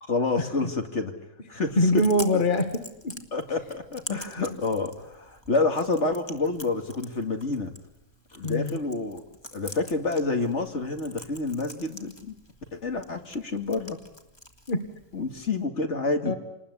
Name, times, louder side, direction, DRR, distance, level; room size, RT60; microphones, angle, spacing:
voice 1, 0.0-1.1 1.5-2.0 2.3-2.4 3.3-7.7 8.3-9.2 9.5-12.3 12.7-14.0 15.1-16.3, left 3 dB, 65° left, 5 dB, 2.7 m, -28 dB
Chewing mastication, 1.7-15.7, left 1 dB, 20° left, 2.4 m, -46 dB
voice 2, 1.8-3.3 4.1-4.2 8.4-8.8 14.7-14.9 16.3-16.4, left 1 dB, 40° left, 7 dB, 1.9 m, -24 dB
28.0 x 20.5 x 9.9 m, 0.84 s
omnidirectional pair, 1.3 m